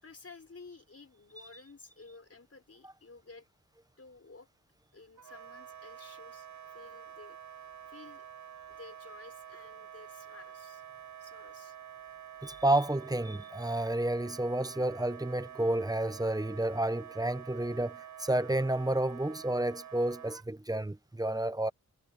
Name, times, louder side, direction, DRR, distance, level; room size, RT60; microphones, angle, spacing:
voice 1, 0.0-3.5 4.0-4.5 4.9-7.4 7.9-8.3 8.7-10.8 11.2-11.8, left 3 dB, 45° left, 4.4 m, -53 dB
Wind instrument woodwind instrument, 5.2-20.5, right 9 dB, 60° right, 0.7 m, -48 dB
voice 2, 12.4-21.7, right 1 dB, 10° right, 0.8 m, -30 dB
wide cardioid pair, 70°, 33 cm